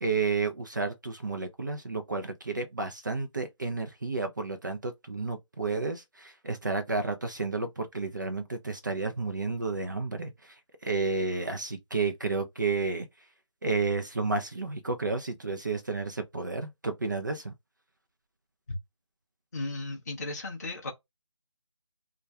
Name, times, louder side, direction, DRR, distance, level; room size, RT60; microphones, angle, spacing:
voice 1, 0.0-13.3 13.6-17.5, right 3 dB, 40° right, 0.4 m, -31 dB
voice 2, 19.5-20.9, left 2 dB, 35° left, 0.4 m, -35 dB
2.2 x 2.2 x 2.6 m
figure-of-eight pair, 165°, 16 cm